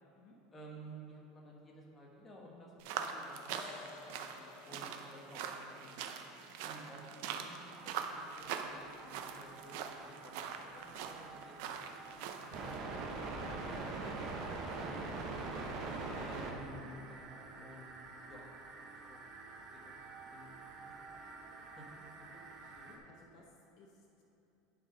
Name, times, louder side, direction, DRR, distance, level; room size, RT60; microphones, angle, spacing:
voice 1, 0.5-2.7 3.0-3.6 4.1-5.9 6.6-9.8 10.0-10.3 10.7-12.7 13.5-14.3 14.8-15.5 16.2-18.5 19.1-19.2 19.7-20.6 20.8-21.2 21.6-21.8, right 1 dB, 15° left, -3 dB, 1.1 m, -54 dB
sound 1, 2.8-12.8, right 7 dB, 60° right, 0.6 m, -43 dB
sound 2, 3.5-10.5, left 4 dB, 75° left, 0.9 m, -58 dB
sound 3, 7.7-23.0, right 3 dB, 40° right, 0.9 m, -45 dB
voice 2, 22.6-24.2, left 2 dB, 45° left, 0 dB, 0.8 m, -61 dB
10.5 x 4.7 x 5.1 m, 2.9 s
cardioid pair, 170°, 0 cm